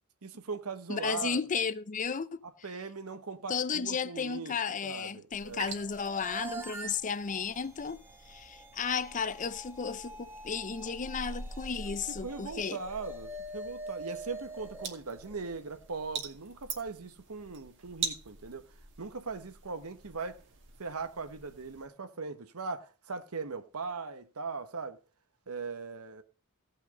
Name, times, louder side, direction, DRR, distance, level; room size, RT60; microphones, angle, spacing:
voice 1, 0.2-1.4 2.4-4.5 4.8-5.8 11.8-18.6 19.0-20.4 20.8-25.0 25.5-26.2, right 4 dB, 90° right, 1.1 m, -40 dB
voice 2, 0.9-2.4 3.5-8.0 8.3-12.8, left 6 dB, 35° left, 0.6 m, -34 dB
sound 1, 5.3-21.9, right 4 dB, 60° right, 2.3 m, -45 dB
sound 2, 5.8-16.0, right 2 dB, 10° right, 1.1 m, -45 dB
16.5 x 5.7 x 5.2 m
head